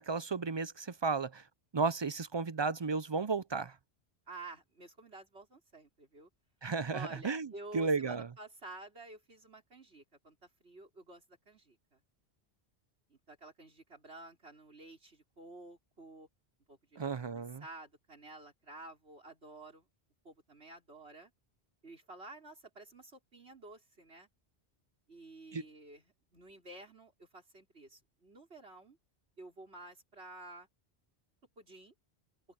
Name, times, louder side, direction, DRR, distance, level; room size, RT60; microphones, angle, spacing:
voice 1, 0.0-1.4 1.7-3.8 6.6-8.3 17.0-17.6 25.5-25.6, right 4 dB, 40° right, 0.4 m, -34 dB
voice 2, 4.3-6.3 6.9-12.0 13.1-16.3 16.7-19.9 20.2-21.3 21.8-24.3 25.1-29.0 29.4-30.7 31.6-31.9, right 2 dB, 70° right, 5.0 m, -51 dB
omnidirectional pair, 1.1 m